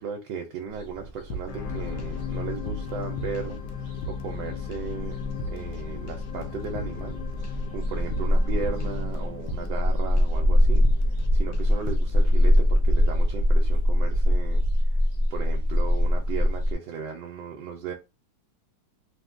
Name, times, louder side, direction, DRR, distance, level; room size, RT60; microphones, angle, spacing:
voice 1, 0.0-3.6 4.1-5.2 5.5-7.2 7.7-10.9 11.3-14.6 14.9-15.0 15.3-17.9, right 6 dB, 75° right, 1.1 m, -36 dB
sound 1, 0.7-16.7, left 1 dB, 45° right, 0.4 m, -23 dB
sound 2, 1.3-2.2 2.5-4.4 4.7-5.0 5.3-5.8 6.1-9.9 10.2-10.5 10.8-11.3 11.5-12.2, right 1 dB, 90° left, 1.3 m, -39 dB
sound 3, 1.5-13.9 14.4-14.5, left 7 dB, 70° left, 1.0 m, -37 dB
3.5 x 2.1 x 2.4 m
omnidirectional pair, 2.0 m